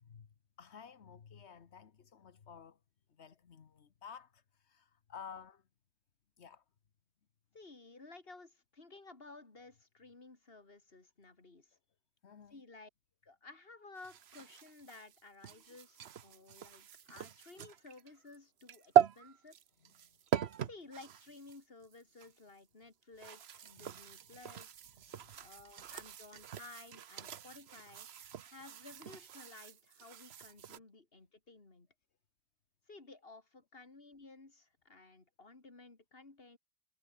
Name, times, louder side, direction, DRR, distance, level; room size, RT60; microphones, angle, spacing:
voice 1, 0.6-2.8 3.2-5.6 6.4-6.6 12.2-12.6 15.6-15.8 16.1-16.2 20.3-20.6 23.8-23.9 25.8-26.0, left 7 dB, 85° left, 1.5 m, -53 dB
voice 2, 7.5-11.7 12.5-12.9 13.2-19.6 20.6-24.8 25.3-28.1 28.5-31.9 32.9-36.6, left 3 dB, 60° left, 3.1 m, -55 dB
sound 1, 14.0-22.4 23.0-30.8, right 9 dB, 75° right, 1.1 m, -38 dB
omnidirectional pair, 1.1 m